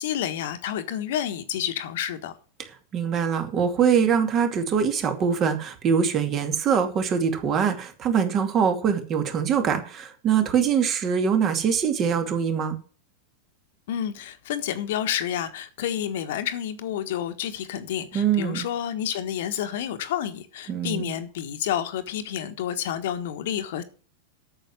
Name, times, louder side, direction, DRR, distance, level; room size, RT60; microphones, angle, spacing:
voice 1, 0.0-2.3 13.9-23.8, left 10 dB, 55° left, 1.4 m, -29 dB
voice 2, 2.9-12.8 18.1-18.7 20.7-21.1, right 7 dB, 30° right, 2.4 m, -23 dB
8.9 x 7.7 x 7.5 m
figure-of-eight pair, 90°, 0 cm